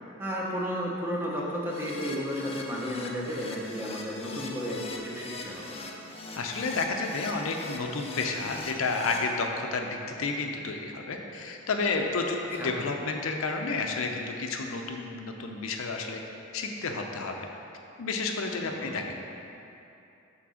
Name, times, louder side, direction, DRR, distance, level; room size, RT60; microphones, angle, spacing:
voice 1, 0.2-5.8 12.6-12.7 18.7-18.9, equal, 10° right, -4 dB, 0.8 m, -33 dB
Keyboard (musical), 1.7-9.2, left 3 dB, 30° left, 0.5 m, -41 dB
voice 2, 6.4-16.2 16.5-17.5 18.0-19.1, left 3 dB, 80° left, 3 dB, 0.6 m, -31 dB
6.0 x 3.9 x 6.3 m, 2.8 s
head